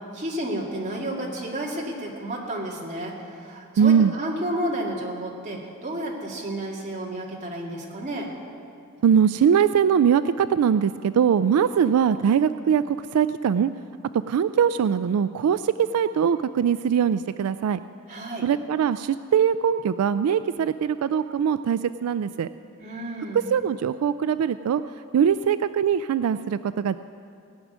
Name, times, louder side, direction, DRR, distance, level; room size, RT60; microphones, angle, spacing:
voice 1, 0.1-8.3 18.1-18.5 22.8-23.5, right 1 dB, 35° right, -2 dB, 2.2 m, -31 dB
voice 2, 3.8-4.1 9.0-13.7 14.3-17.8 18.4-22.5 23.5-24.8 25.1-27.0, right 7 dB, 85° right, 13 dB, 0.3 m, -21 dB
17.5 x 6.2 x 9.5 m, 2.4 s
head